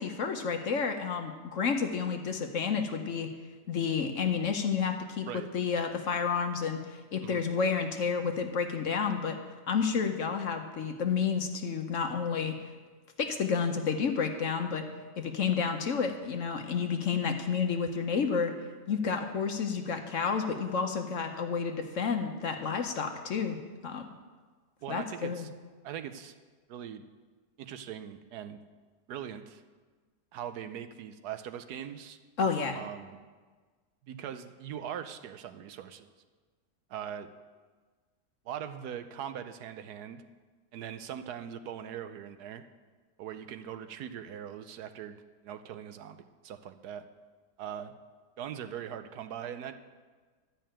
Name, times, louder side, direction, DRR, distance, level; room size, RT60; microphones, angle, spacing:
voice 1, 0.0-3.3 3.7-5.3 5.5-9.4 9.7-12.6 13.2-14.8 15.2-18.5 18.9-23.6 23.8-24.0 24.9-25.5 32.4-32.8, left 6 dB, 55° left, 5 dB, 1.1 m, -30 dB
voice 2, 24.8-25.5 25.8-26.3 26.7-27.0 27.6-28.6 29.1-29.6 30.3-32.2 32.8-33.2 34.0-36.1 36.9-37.3 38.5-40.2 40.7-42.7 43.2-45.2 45.4-47.1 47.6-48.0 48.4-49.7, right 9 dB, 75° right, 9 dB, 1.2 m, -41 dB
12.0 x 5.6 x 8.8 m, 1.4 s
omnidirectional pair, 1.7 m